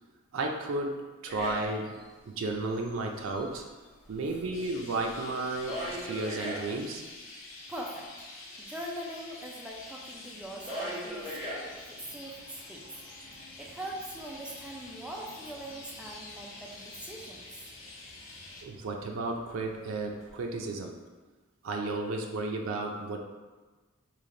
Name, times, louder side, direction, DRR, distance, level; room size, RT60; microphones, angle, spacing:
voice 1, 0.3-3.6 4.1-7.0 18.6-21.0 21.6-23.2, right 2 dB, 85° right, 2 dB, 0.4 m, -33 dB
sound 1, 1.3-2.1 2.4-3.6 4.0-6.8 8.8-8.9 9.1-20.7, equal, 50° left, 1.4 m, -43 dB
Chirp tweet, 4.5-18.6, left 2 dB, 75° left, 0.6 m, -48 dB
voice 2, 7.7-8.3 8.6-11.3 11.6-12.9 13.3-17.6, right 1 dB, 5° right, -2 dB, 0.4 m, -42 dB
3.2 x 2.4 x 3.7 m, 1.3 s
head